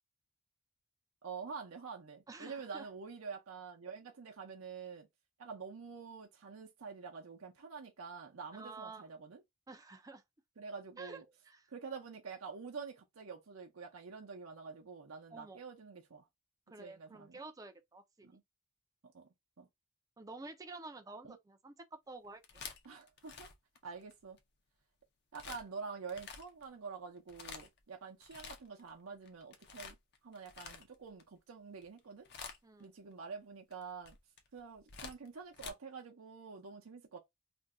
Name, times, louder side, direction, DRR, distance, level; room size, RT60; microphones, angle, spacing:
voice 1, 1.2-5.1 5.4-9.4 10.6-11.2 11.7-16.2 16.8-17.4 18.2-18.4 19.0-19.3 19.6-19.7 21.2-21.4 22.8-23.5 23.8-24.4 25.3-30.0 30.2-32.3 32.8-34.2 34.5-37.2, right 5 dB, 90° right, 0.6 m, -47 dB
voice 2, 2.3-2.9 8.5-9.1 9.7-10.2 11.0-11.7 15.3-15.6 16.7-18.3 20.2-21.7 22.1-22.6 32.6-32.9, right 3 dB, 15° right, 0.4 m, -50 dB
sound 1, 22.2-24.4 25.3-25.6 26.1-26.7 27.2-27.8 28.2-28.9 29.2-31.2 31.7-32.0 32.2-32.8 33.7-35.7, left 5 dB, 50° left, 0.6 m, -49 dB
2.5 x 2.2 x 3.6 m
head